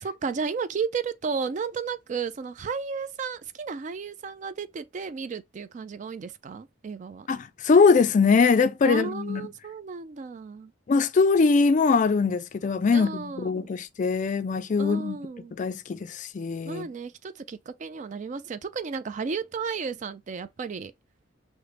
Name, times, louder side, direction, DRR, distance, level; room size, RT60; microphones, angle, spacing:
voice 1, 0.0-7.3 8.8-10.7 12.9-13.7 14.8-15.5 16.6-20.9, right 5 dB, 40° right, 0.3 m, -33 dB
voice 2, 7.3-9.5 10.9-15.2 15.6-16.9, left 4 dB, 40° left, 0.3 m, -22 dB
6.0 x 2.1 x 3.3 m
head